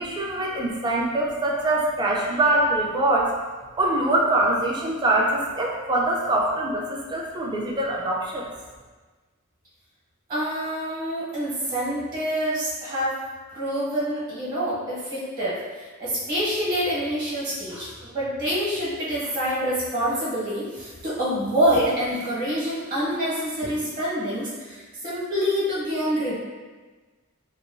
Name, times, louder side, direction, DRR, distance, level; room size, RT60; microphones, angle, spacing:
voice 1, 0.0-3.3 3.8-8.4, right 2 dB, 20° right, -2 dB, 0.4 m, -23 dB
voice 2, 10.3-13.1 13.5-26.3, equal, 45° right, -9 dB, 1.0 m, -26 dB
2.9 x 2.2 x 2.4 m, 1.3 s
head